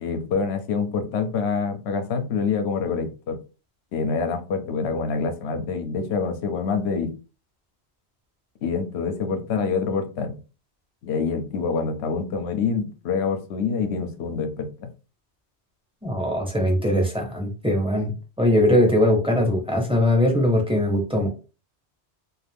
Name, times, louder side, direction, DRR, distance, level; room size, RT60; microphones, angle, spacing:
voice 1, 0.0-3.4 3.9-7.1 8.6-10.4 11.0-14.9, left 5 dB, 75° left, 7 dB, 0.9 m, -26 dB
voice 2, 16.0-18.1 18.4-21.3, left 1 dB, 5° right, 0 dB, 0.7 m, -21 dB
2.4 x 2.4 x 3.4 m, 0.33 s
omnidirectional pair, 1.1 m